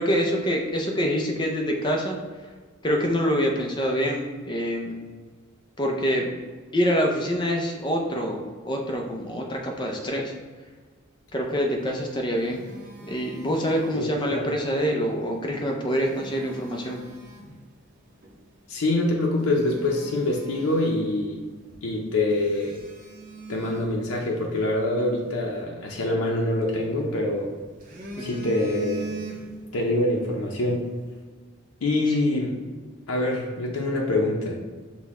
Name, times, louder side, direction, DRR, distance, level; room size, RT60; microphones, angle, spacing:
voice 1, 0.0-2.2 2.8-5.0 5.8-6.4 6.7-10.3 11.3-12.6 13.1-17.0 28.2-28.4 32.1-32.2, equal, 20° left, 1 dB, 0.5 m, -26 dB
Telephone, 11.9-14.5 15.7-17.6 18.2-18.4 18.9-19.0 19.4-21.4 21.7-21.8 22.3-24.7 26.3-27.2 27.6-29.8 30.1-30.3, right 3 dB, 40° right, 0.6 m, -41 dB
voice 2, 13.9-14.5 18.7-21.4 21.8-22.8 23.5-27.5 28.2-29.1 29.7-30.9 31.8-32.6 33.1-34.6, left 2 dB, 85° left, -1 dB, 0.6 m, -25 dB
6.0 x 2.2 x 3.5 m, 1.4 s
head